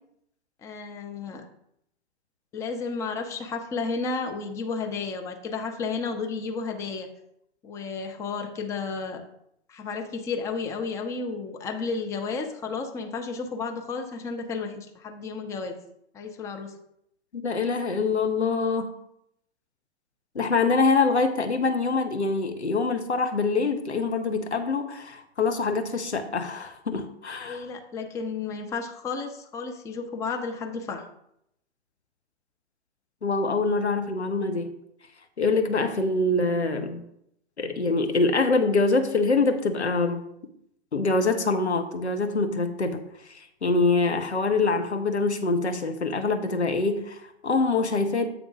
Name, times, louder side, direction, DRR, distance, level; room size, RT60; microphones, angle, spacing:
voice 1, 0.6-1.5 2.5-7.1 7.6-9.2 9.7-15.8 16.1-16.7 27.4-31.0, left 4 dB, 10° left, 5 dB, 0.4 m, -32 dB
voice 2, 17.3-18.9 20.3-27.7 33.2-34.7 35.4-37.0 37.6-40.2 40.9-48.3, left 3 dB, 85° left, 6 dB, 0.8 m, -25 dB
8.1 x 3.6 x 4.9 m, 0.76 s
figure-of-eight pair, 110°, 33 cm